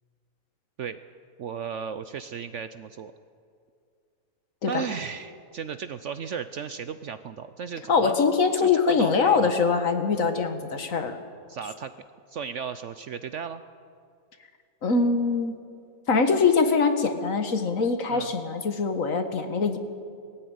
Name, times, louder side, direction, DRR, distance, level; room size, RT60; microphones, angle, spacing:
voice 1, 1.4-3.1 4.7-8.2 8.6-9.5 11.5-11.9 12.3-13.6 18.1-18.3, right 7 dB, 60° right, 11 dB, 0.8 m, -35 dB
voice 2, 7.9-11.2 14.8-15.6 16.1-19.8, left 4 dB, 55° left, 7 dB, 1.7 m, -23 dB
20.0 x 14.5 x 9.4 m, 2.4 s
omnidirectional pair, 1.7 m